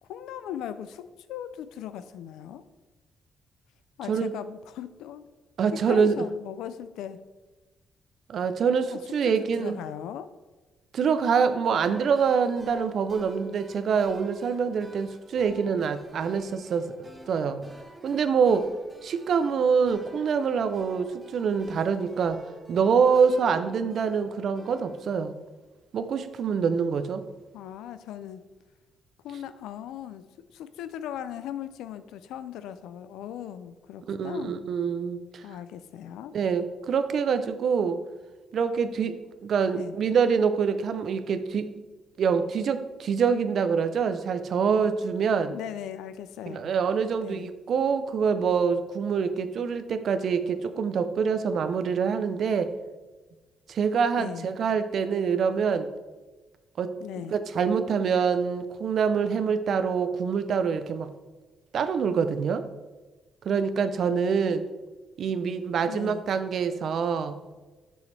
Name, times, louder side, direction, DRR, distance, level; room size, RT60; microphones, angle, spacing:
voice 1, 0.0-2.6 4.0-5.3 5.7-7.2 8.9-10.3 27.5-28.4 29.2-30.2 30.5-34.6 35.4-36.3 39.7-40.0 45.5-46.7 47.2-47.5 54.1-54.5 57.0-57.3 65.9-66.2, left 10 dB, 90° left, 12 dB, 0.4 m, -38 dB
voice 2, 5.6-6.2 8.3-9.8 10.9-17.0 17.3-17.6 18.0-18.7 19.0-22.4 22.7-25.4 25.9-27.2 34.1-35.4 36.3-38.0 38.5-41.7 42.2-45.5 46.5-52.7 53.7-55.9 56.8-57.0 57.3-61.1 61.7-62.7 63.4-64.6 65.2-67.4, right 6 dB, 60° right, 10 dB, 0.5 m, -25 dB
sound 1, 11.8-25.1, right 2 dB, 15° right, 1.2 m, -49 dB
7.0 x 6.3 x 3.3 m, 1.2 s
cardioid pair, 90°, 0 cm